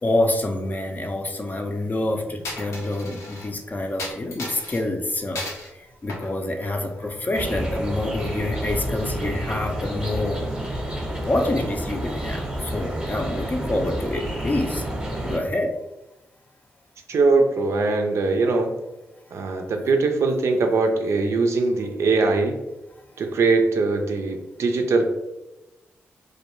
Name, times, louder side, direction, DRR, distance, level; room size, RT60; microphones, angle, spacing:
voice 1, 0.0-5.4 6.0-10.4 11.2-14.8 15.2-15.7, left 2 dB, 35° left, 3 dB, 0.5 m, -26 dB
Coin (dropping), 2.4-3.5 4.0-4.8 5.4-5.7 6.1-7.2, left 2 dB, 75° left, 0.6 m, -35 dB
sound 1, 7.3-15.4, right 1 dB, 15° right, 0.8 m, -29 dB
voice 2, 17.1-18.7 19.3-22.6 23.2-25.1, right 3 dB, 65° right, 4 dB, 0.4 m, -21 dB
2.2 x 2.1 x 3.0 m, 0.98 s
supercardioid pair, 40°, 5 cm